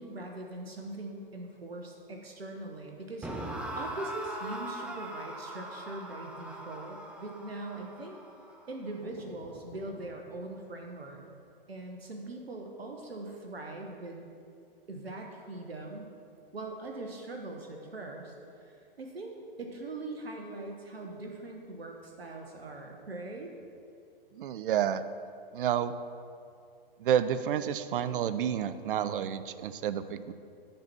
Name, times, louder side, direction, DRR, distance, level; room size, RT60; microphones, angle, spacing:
voice 1, 0.0-8.2 8.7-11.2 11.7-14.2 14.9-16.1 16.5-18.3 18.6-23.5, right 2 dB, 90° right, 2 dB, 1.1 m, -41 dB
sound 1, 3.2-10.3, right 1 dB, 5° right, 0.4 m, -42 dB
voice 2, 24.3-25.0 25.5-25.9 27.0-30.3, right 9 dB, 60° right, 13 dB, 0.5 m, -30 dB
10.0 x 4.1 x 6.0 m, 2.4 s
hypercardioid pair, 120°, 29 cm